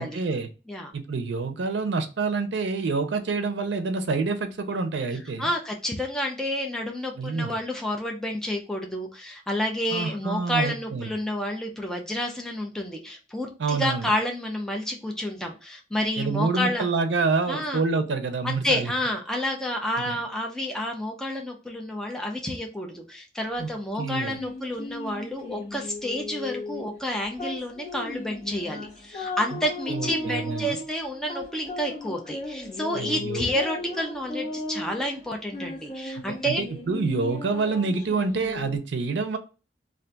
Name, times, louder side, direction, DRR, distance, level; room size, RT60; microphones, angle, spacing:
voice 1, 0.0-0.5 0.9-5.5 7.2-7.5 9.9-11.1 13.6-14.1 16.2-18.9 20.1-20.2 23.6-23.7 24.0-24.4 29.5-29.6 29.9-30.8 32.9-33.5 36.5-39.4, right 4 dB, 85° right, 8 dB, 0.5 m, -27 dB
voice 2, 5.4-16.9 17.5-17.8 18.4-36.6, left 1 dB, 5° left, 1 dB, 0.4 m, -30 dB
sound 1, 24.0-38.8, left 2 dB, 25° left, 1.2 m, -36 dB
2.5 x 2.3 x 3.8 m, 0.33 s
head